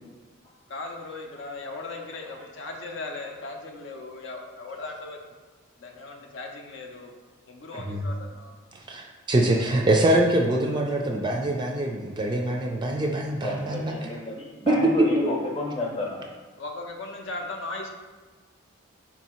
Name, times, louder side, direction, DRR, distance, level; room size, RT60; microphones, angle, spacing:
voice 1, 0.7-5.2 5.8-7.1 7.5-8.6 12.5-13.0 16.6-17.9, left 2 dB, 65° left, 2 dB, 0.6 m, -38 dB
voice 2, 8.7-13.9 14.7-14.8, right 1 dB, 20° right, 0 dB, 0.3 m, -24 dB
voice 3, 13.3-16.2, left 1 dB, 25° left, -1 dB, 0.7 m, -30 dB
4.6 x 2.7 x 4.3 m, 1.4 s
head